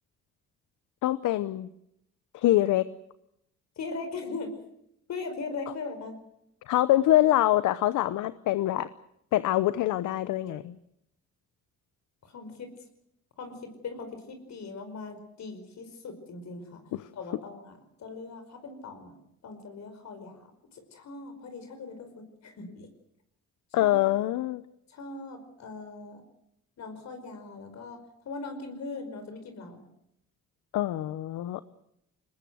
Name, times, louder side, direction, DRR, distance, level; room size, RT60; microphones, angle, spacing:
voice 1, 1.0-1.7 2.3-2.9 6.7-8.9 9.3-10.8 16.9-17.1 23.7-24.6 30.7-31.6, left 14 dB, 80° left, 15 dB, 0.9 m, -25 dB
voice 2, 3.8-4.5 5.1-6.2 12.2-12.7 13.4-16.8 17.1-19.2 19.4-22.9 23.8-24.0 24.9-26.2 26.8-29.8, left 3 dB, 65° left, 7 dB, 5.2 m, -40 dB
22.5 x 20.0 x 8.0 m, 0.78 s
cardioid pair, 90°, 30 cm